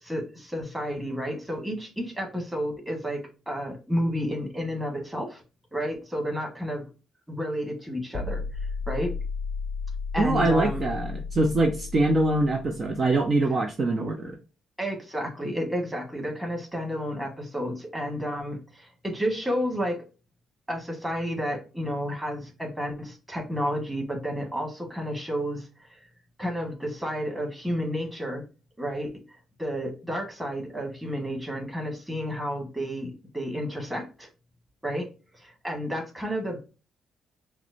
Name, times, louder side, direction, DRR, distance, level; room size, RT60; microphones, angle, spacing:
voice 1, 0.0-5.4 5.7-6.8 7.3-8.4 8.9-9.1 10.1-10.8 14.8-20.0 20.7-25.7 26.4-28.4 28.8-29.1 29.6-34.3 34.8-35.1 35.3-36.7, equal, 10° right, 0 dB, 1.6 m, -31 dB
sound 1, 8.1-13.2, left 5 dB, 75° left, 0.3 m, -34 dB
voice 2, 10.2-14.4, right 2 dB, 40° right, 3 dB, 0.6 m, -24 dB
5.8 x 2.1 x 2.6 m, 0.32 s
cardioid pair, 90°, 0 cm